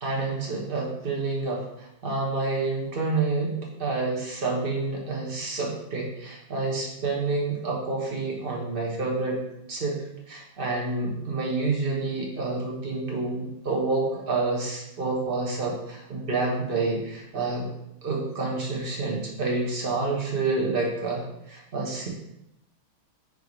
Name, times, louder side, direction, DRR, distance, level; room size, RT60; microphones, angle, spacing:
voice 1, 0.0-9.4 9.7-17.7 18.0-22.1, right 3 dB, 35° right, -2 dB, 1.1 m, -28 dB
10.0 x 3.4 x 3.2 m, 0.83 s
omnidirectional pair, 2.3 m